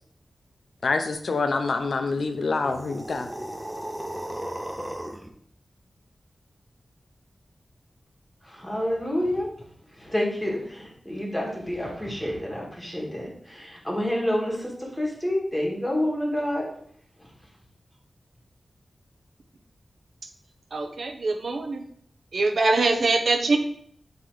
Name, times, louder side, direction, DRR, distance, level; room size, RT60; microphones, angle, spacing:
voice 1, 0.8-3.3, left 3 dB, 80° left, 6 dB, 0.4 m, -26 dB
sound 1, 2.7-5.3, right 1 dB, 15° right, 0.4 m, -35 dB
voice 2, 8.4-9.5 9.9-16.7 17.2-17.3, left 1 dB, 5° left, -2 dB, 1.4 m, -28 dB
voice 3, 20.7-21.9 22.3-23.6, right 3 dB, 80° right, 5 dB, 0.5 m, -23 dB
3.9 x 3.0 x 4.5 m, 0.63 s
wide cardioid pair, 75°, 0 cm